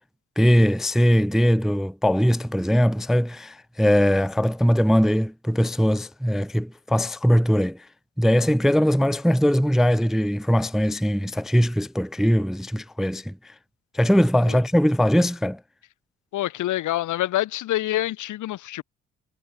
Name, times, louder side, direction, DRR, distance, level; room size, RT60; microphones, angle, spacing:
voice 1, 0.4-7.8 8.2-13.3 13.9-15.6, equal, ahead, 0.4 m, -20 dB
voice 2, 16.3-18.8, left 14 dB, 80° left, 1.4 m, -26 dB
cardioid pair, 90°, 30 cm